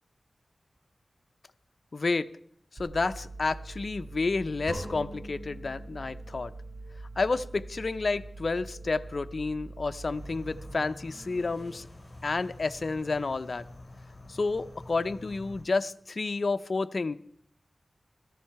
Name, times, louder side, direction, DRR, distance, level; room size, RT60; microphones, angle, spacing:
voice 1, 1.9-2.3 2.8-6.5 7.2-11.9 12.2-13.6 14.3-17.2, left 3 dB, 60° left, 11 dB, 0.5 m, -30 dB
sound 1, 2.8-11.8, right 2 dB, 90° right, 2.1 m, -44 dB
sound 2, 4.7-6.7, right 1 dB, 25° right, 4.7 m, -42 dB
sound 3, 10.1-15.6, left 1 dB, 35° left, 4.0 m, -47 dB
16.0 x 14.0 x 4.6 m, 0.63 s
cardioid pair, 50°, 0 cm